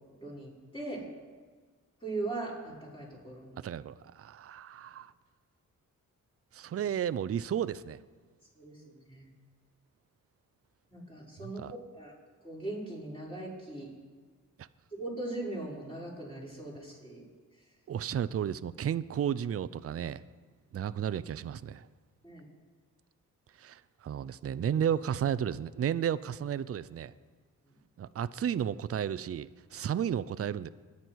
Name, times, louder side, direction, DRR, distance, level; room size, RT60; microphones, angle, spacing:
voice 1, 0.2-1.0 2.0-3.6 8.6-9.3 10.9-12.1 12.4-13.9 14.9-17.2 22.2-22.4, right 2 dB, 15° left, -5 dB, 5.7 m, -40 dB
voice 2, 3.6-5.1 6.5-8.0 11.4-11.7 17.9-20.2 20.7-21.9 23.6-27.1 28.0-30.7, right 9 dB, 45° right, 15 dB, 0.5 m, -33 dB
23.5 x 9.6 x 4.7 m, 1.5 s
cardioid pair, 80°, 32 cm